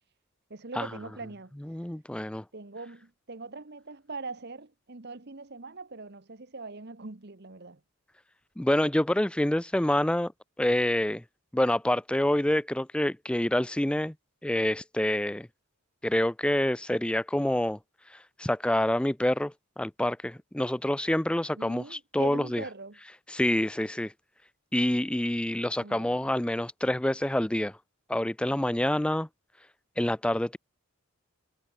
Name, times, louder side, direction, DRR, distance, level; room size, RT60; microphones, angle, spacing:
voice 1, 0.5-1.5 2.5-7.8 21.5-23.0 25.8-26.2, right 3 dB, 50° right, 1.2 m, -42 dB
voice 2, 1.6-2.4 8.6-10.3 10.6-11.2 11.5-14.1 14.4-15.5 16.0-17.8 18.4-22.6 23.3-24.1 24.7-27.7 28.1-29.3 30.0-30.6, left 1 dB, 5° left, 0.3 m, -27 dB
head